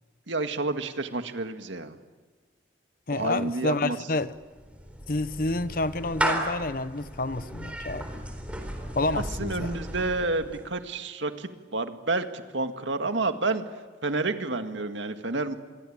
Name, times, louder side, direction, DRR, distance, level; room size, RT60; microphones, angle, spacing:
voice 1, 0.3-2.0 3.1-4.0 9.1-13.6 14.0-15.5, right 3 dB, 80° right, 2.0 m, -29 dB
voice 2, 3.1-4.3 5.1-8.1 9.0-9.7, left 2 dB, 50° left, 0.9 m, -29 dB
Clapping / Meow, 4.3-10.7, right 1 dB, 5° right, 4.0 m, -35 dB
27.0 x 23.0 x 8.9 m
head